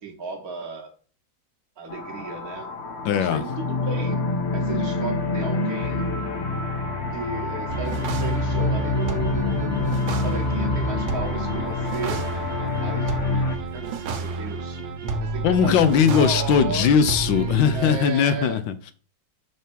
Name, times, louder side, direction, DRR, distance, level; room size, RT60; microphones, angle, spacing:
voice 1, 0.0-0.9 1.8-2.7 3.1-4.2 4.5-6.1 7.1-12.2 12.8-14.8 15.2-16.9 17.7-18.6, right 4 dB, 55° right, 1.2 m, -34 dB
sound 1, 1.9-13.6, left 3 dB, 60° left, 0.7 m, -27 dB
voice 2, 3.0-3.4 15.4-18.9, left 7 dB, 80° left, 1.3 m, -20 dB
sound 2, 7.7-17.9, right 3 dB, 70° right, 1.5 m, -30 dB
6.1 x 3.5 x 4.4 m
omnidirectional pair, 2.1 m